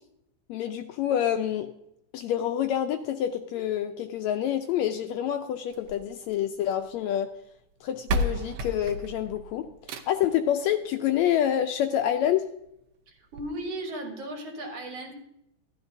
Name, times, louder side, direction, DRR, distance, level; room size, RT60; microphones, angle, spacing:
voice 1, 0.5-1.7 2.1-7.3 7.8-12.4, left 10 dB, 80° left, 7 dB, 1.7 m, -27 dB
sound 1, 5.7-6.9 7.7-7.8 8.1-10.4 11.7-11.8 12.3-12.4 12.6-12.7 13.3-13.4, equal, 75° right, 1.5 m, -32 dB
voice 2, 13.1-15.1, right 1 dB, 60° right, 2 dB, 2.2 m, -36 dB
13.5 x 11.5 x 2.6 m, 0.79 s
omnidirectional pair, 3.5 m